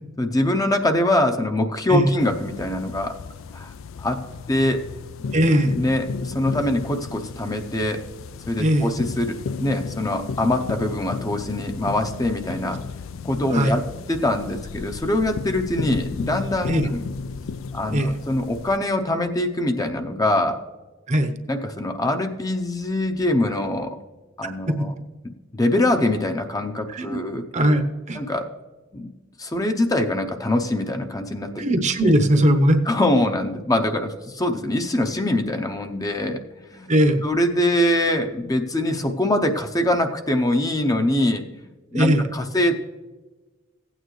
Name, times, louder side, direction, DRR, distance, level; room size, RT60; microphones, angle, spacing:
voice 1, 0.2-3.2 3.5-3.7 4.0-4.9 5.8-8.1 8.5-12.8 13.2-17.0 17.7-20.6 21.5-24.0 24.4-24.9 25.5-27.4 28.1-28.5 28.9-29.1 29.4-31.6 32.0-32.1 32.9-36.9 37.2-42.7, left 1 dB, 20° left, 5 dB, 0.6 m, -23 dB
sound 1, 2.2-18.8, left 4 dB, 75° left, 0.4 m, -34 dB
voice 2, 5.3-5.8 8.6-8.9 13.5-13.8 16.7-16.9 17.9-18.1 21.1-21.3 24.4-24.9 26.9-27.2 27.5-28.2 31.6-32.8 36.9-37.2 41.9-42.3, right 1 dB, 35° right, 7 dB, 0.8 m, -19 dB
16.0 x 9.1 x 3.1 m, 1.2 s
head